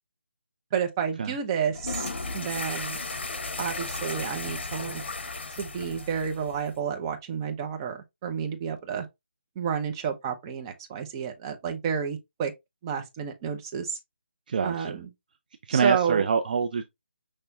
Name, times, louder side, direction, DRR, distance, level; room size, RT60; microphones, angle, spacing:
voice 1, 0.7-3.0 3.6-5.0 5.6-9.1 9.6-12.5 12.8-14.0 14.6-15.1 15.7-16.3, right 7 dB, 20° right, 0.8 m, -30 dB
sound 1, 1.7-6.8, left 3 dB, 65° left, 1.2 m, -35 dB
voice 2, 14.5-15.0 15.7-16.8, right 6 dB, 45° right, 0.5 m, -25 dB
5.8 x 3.2 x 2.7 m
figure-of-eight pair, 160°, 6 cm